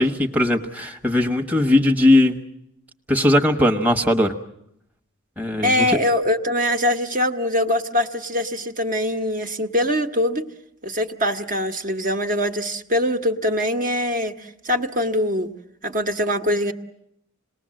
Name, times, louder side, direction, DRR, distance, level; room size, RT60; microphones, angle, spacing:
voice 1, 0.0-2.4 3.1-4.3 5.4-6.0, left 1 dB, 10° right, 2 dB, 1.1 m, -19 dB
voice 2, 5.6-10.4 10.8-15.5 15.8-16.7, left 1 dB, 40° right, 4 dB, 1.2 m, -23 dB
27.5 x 20.0 x 7.6 m, 0.77 s
head